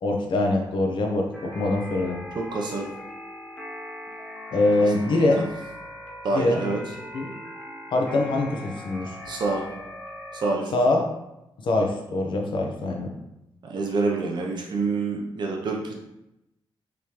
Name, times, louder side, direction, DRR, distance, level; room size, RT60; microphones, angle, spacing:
voice 1, 0.0-2.2 4.5-5.4 6.3-6.6 7.1-7.3 7.9-9.1 10.7-11.1 11.6-13.1, left 2 dB, 65° left, 1 dB, 0.8 m, -23 dB
sound 1, 1.3-10.5, left 1 dB, 15° left, 0.6 m, -40 dB
voice 2, 2.3-2.9 4.8-5.3 6.2-6.8 9.3-9.6 10.3-10.7 13.6-15.9, right 3 dB, 55° right, 0 dB, 0.6 m, -27 dB
4.9 x 3.4 x 2.9 m, 0.88 s
wide cardioid pair, 170°, 9 cm